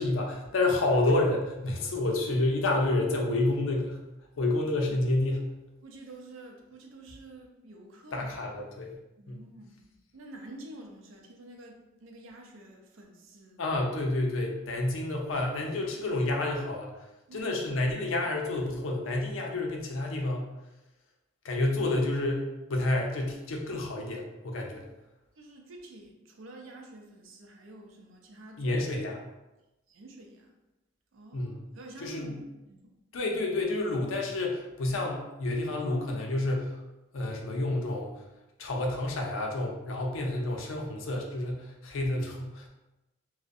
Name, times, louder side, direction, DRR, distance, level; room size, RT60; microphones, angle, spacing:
voice 1, 0.0-4.0 4.4-5.5 8.1-9.0 9.3-9.4 13.6-17.0 17.3-20.5 21.4-24.9 28.6-29.3 31.3-31.6 32.0-32.4 33.1-36.8 37.1-38.1 38.6-42.7, left 2 dB, 85° left, 1 dB, 0.5 m, -29 dB
voice 2, 5.8-8.4 9.2-9.8 10.1-13.6 17.3-17.5 25.4-28.8 29.9-30.5 31.1-32.4 32.7-32.9, right 2 dB, 85° right, 2 dB, 0.5 m, -48 dB
2.5 x 2.0 x 2.4 m, 1.0 s
head